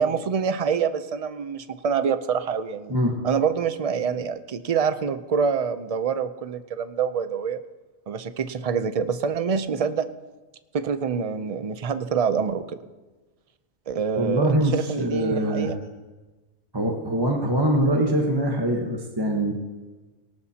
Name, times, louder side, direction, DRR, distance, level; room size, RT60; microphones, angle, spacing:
voice 1, 0.0-2.9 3.2-7.6 8.1-10.1 10.7-12.8 13.9-15.8, right 6 dB, 45° right, 11 dB, 0.5 m, -26 dB
voice 2, 14.2-15.7 16.7-19.6, right 1 dB, 20° right, 1 dB, 1.2 m, -23 dB
18.5 x 18.0 x 2.9 m, 1.2 s
omnidirectional pair, 1.4 m